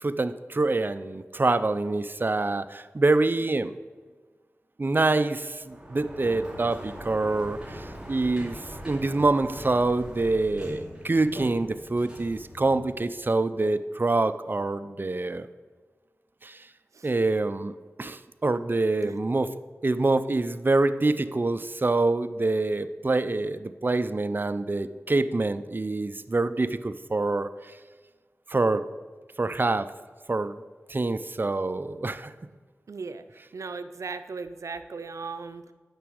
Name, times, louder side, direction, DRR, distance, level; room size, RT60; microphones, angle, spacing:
voice 1, 0.0-3.7 4.8-8.6 8.8-15.5 16.4-16.6 17.0-17.7 18.0-19.5 19.8-27.5 28.5-28.8 29.4-29.9 30.3-30.6 30.9-32.3, right 2 dB, 40° right, 11 dB, 0.5 m, -26 dB
Sliding door, 5.6-13.4, equal, 15° right, 2.4 m, -42 dB
voice 2, 32.9-33.2 33.5-35.7, right 4 dB, 85° right, 10 dB, 0.6 m, -37 dB
9.1 x 6.0 x 6.4 m, 1.4 s
cardioid pair, 45°, 5 cm